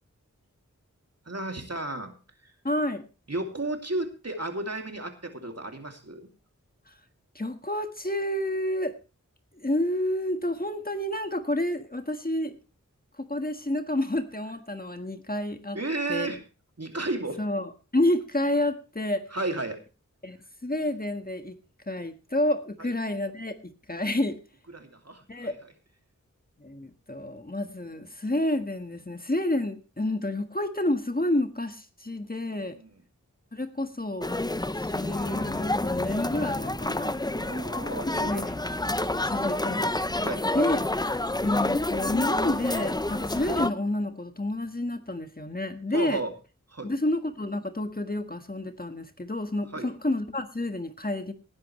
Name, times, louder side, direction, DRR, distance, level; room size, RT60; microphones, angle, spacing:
voice 1, 1.3-2.2 2.4-2.5 3.3-6.3 15.7-16.4 16.8-17.4 19.3-19.8 22.8-22.9 24.7-25.5 32.5-32.9 37.4-38.5 40.2-40.5 45.9-46.3 46.7-46.9 49.7-49.9, right 2 dB, 50° right, 5 dB, 2.6 m, -33 dB
voice 2, 2.6-3.0 6.9-7.0 7.3-8.9 9.5-12.6 13.2-15.8 16.1-16.3 17.4-19.2 20.2-21.6 21.9-24.4 25.3-25.5 26.6-32.8 33.5-34.3 34.8-37.1 38.2-38.6 39.1-40.1 40.5-40.8 41.4-46.2 46.8-51.3, left 1 dB, 30° left, 7 dB, 1.5 m, -29 dB
sound 1, 34.2-43.7, left 2 dB, 15° left, 0.6 m, -28 dB
18.5 x 10.5 x 3.2 m, 0.32 s
wide cardioid pair, 55°, 31 cm